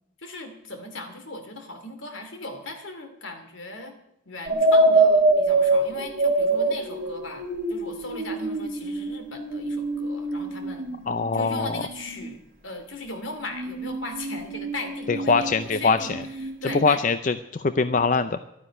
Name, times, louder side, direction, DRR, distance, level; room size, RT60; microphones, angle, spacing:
voice 1, 0.2-4.0 4.3-10.9 11.3-17.0, left 2 dB, 80° left, 6 dB, 2.6 m, -38 dB
sound 1, 4.5-12.3 13.5-16.8, right 2 dB, 45° right, 3.5 m, -25 dB
voice 2, 11.1-11.8 15.1-16.0 16.7-18.4, left 4 dB, 40° left, 11 dB, 0.5 m, -23 dB
12.5 x 9.4 x 10.0 m, 0.82 s
head